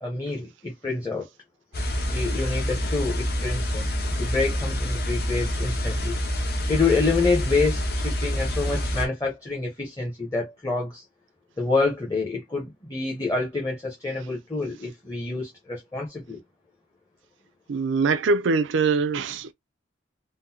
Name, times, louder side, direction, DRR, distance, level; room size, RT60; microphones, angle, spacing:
voice 1, 0.0-1.3 2.1-3.9 4.2-6.2 6.7-11.0 11.6-16.4, left 3 dB, 20° left, 0.8 m, -27 dB
sound 1, 1.7-9.1, equal, 55° left, 1.0 m, -27 dB
voice 2, 17.7-19.5, right 4 dB, 80° right, 0.4 m, -23 dB
3.7 x 2.1 x 2.7 m
head